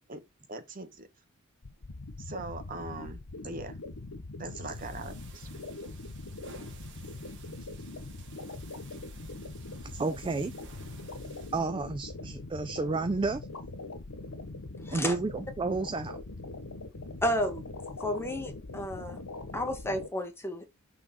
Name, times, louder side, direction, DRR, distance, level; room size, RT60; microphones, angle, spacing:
voice 1, 0.1-1.1 2.2-3.8 4.4-5.5, right 2 dB, 40° right, 1.0 m, -41 dB
sound 1, 1.6-20.1, left 2 dB, 85° left, 1.1 m, -42 dB
sound 2, 4.6-11.7, right 4 dB, 55° right, 1.5 m, -54 dB
voice 2, 9.8-10.5 11.5-13.5 14.9-16.2, right 3 dB, 25° right, 0.3 m, -31 dB
voice 3, 17.2-17.6 18.0-19.2 19.5-20.7, equal, 10° left, 1.2 m, -32 dB
6.1 x 3.7 x 4.2 m
head